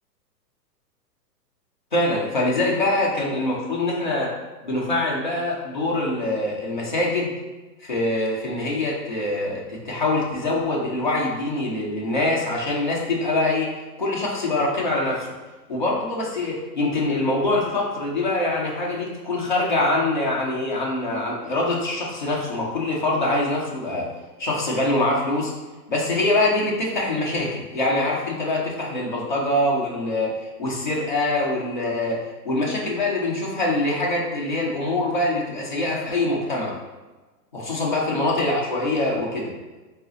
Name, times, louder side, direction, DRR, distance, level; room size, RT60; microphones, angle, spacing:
voice 1, 1.9-4.3 4.6-7.3 7.8-13.7 14.0-15.3 15.7-24.1 24.4-25.5 25.9-30.3 30.6-36.7 37.5-39.5, left 2 dB, 30° left, -4 dB, 0.4 m, -24 dB
3.7 x 2.4 x 3.8 m, 1.2 s
hypercardioid pair, 170°, 50 cm